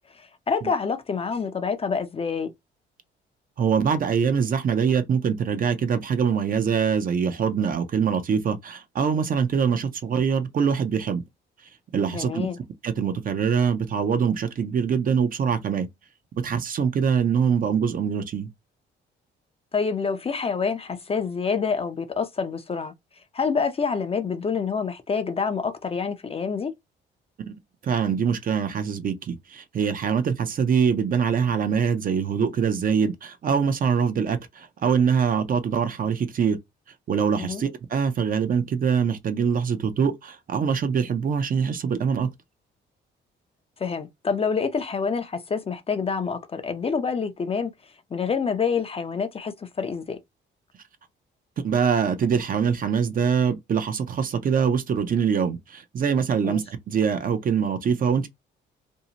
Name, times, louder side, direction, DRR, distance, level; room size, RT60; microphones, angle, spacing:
voice 1, 0.1-2.5 12.1-12.6 19.7-26.7 37.4-37.6 43.8-50.2 56.4-56.6, left 5 dB, 30° left, 0.5 m, -27 dB
voice 2, 3.6-11.2 11.9-12.5 12.8-15.9 16.4-18.5 27.5-27.6 27.8-36.6 37.1-42.3 51.6-58.3, right 6 dB, 45° right, 0.5 m, -24 dB
2.7 x 2.0 x 2.8 m
cardioid pair, 90°, 20 cm